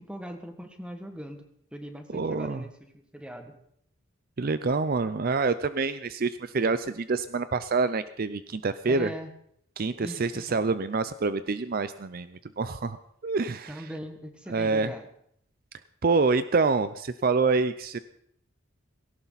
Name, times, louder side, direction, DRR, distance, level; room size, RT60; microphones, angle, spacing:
voice 1, 0.0-1.4 1.7-3.5 8.9-9.3 10.0-10.6 13.7-15.1, equal, 5° right, 5 dB, 1.7 m, -40 dB
voice 2, 2.1-2.6 4.4-9.1 9.8-13.0 13.2-13.9 14.5-14.9 16.0-18.0, right 4 dB, 45° right, 13 dB, 0.5 m, -26 dB
18.5 x 17.5 x 4.1 m, 0.70 s
head